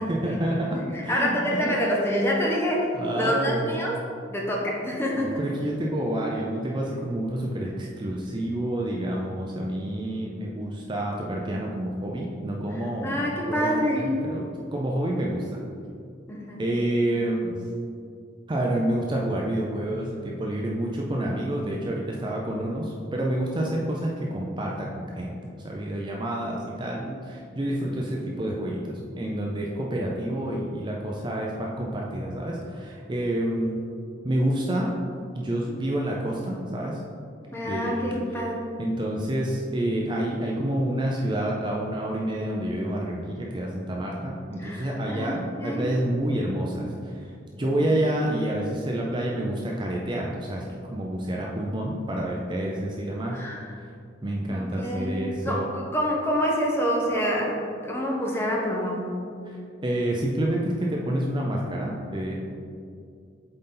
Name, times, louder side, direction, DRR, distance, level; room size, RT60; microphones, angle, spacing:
voice 1, 0.1-1.7 2.9-3.8 5.2-14.4 14.7-15.6 16.6-17.6 18.5-25.4 25.6-33.8 34.2-34.9 35.4-37.0 37.6-38.1 38.8-50.6 50.9-53.4 54.2-55.7 59.4-62.4, right 1 dB, 25° right, -2 dB, 0.5 m, -28 dB
voice 2, 0.7-4.0 4.3-5.4 13.0-14.3 16.3-16.7 37.5-38.7 44.6-45.9 47.6-47.7 53.3-53.7 54.5-55.2 55.4-59.1, equal, 10° left, -2 dB, 0.9 m, -27 dB
7.8 x 4.0 x 3.8 m, 2.4 s
head